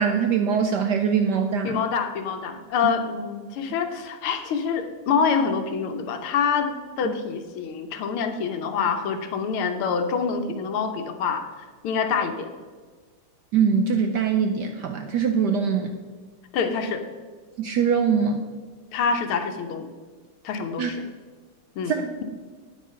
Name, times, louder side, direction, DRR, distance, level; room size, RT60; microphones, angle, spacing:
voice 1, 0.0-1.8 7.0-7.1 13.5-15.9 17.6-18.5 20.8-20.9 21.9-22.2, right 6 dB, 70° right, 6 dB, 1.0 m, -23 dB
voice 2, 1.6-12.5 15.7-15.8 16.5-17.0 18.9-19.9 20.4-21.0 21.7-22.2, left 6 dB, 75° left, 7 dB, 1.8 m, -26 dB
9.3 x 8.2 x 5.6 m, 1.4 s
omnidirectional pair, 2.4 m